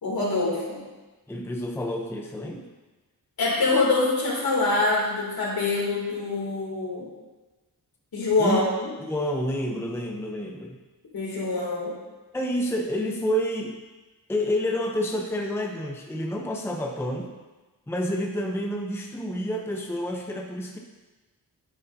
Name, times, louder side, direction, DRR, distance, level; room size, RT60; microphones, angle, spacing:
voice 1, 0.0-0.8 3.4-7.1 8.1-8.9 11.1-11.9, left 3 dB, 70° left, -4 dB, 2.9 m, -25 dB
voice 2, 1.3-2.7 8.4-8.6 9.1-10.8 12.3-13.8 14.3-17.3 17.9-20.8, equal, 5° left, 1 dB, 0.6 m, -29 dB
9.8 x 9.3 x 2.7 m, 1.2 s
wide cardioid pair, 160°, 37 cm